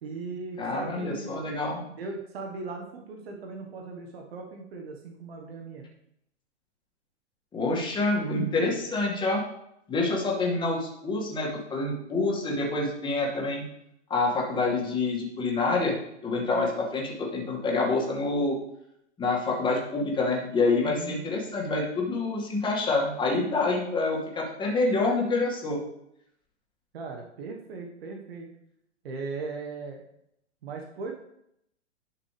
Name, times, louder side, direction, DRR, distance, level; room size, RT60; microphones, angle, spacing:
voice 1, 0.0-1.5 1.8-5.8 20.8-21.2 26.9-28.5 29.0-30.0 30.6-31.1, right 4 dB, 55° right, 1 dB, 1.5 m, -38 dB
voice 2, 0.6-1.8 7.5-9.4 9.9-13.6 14.1-16.0 16.2-18.6 19.2-25.8, left 3 dB, 15° left, -2 dB, 2.1 m, -27 dB
11.0 x 5.9 x 3.4 m, 0.77 s
hypercardioid pair, 120°, 35 cm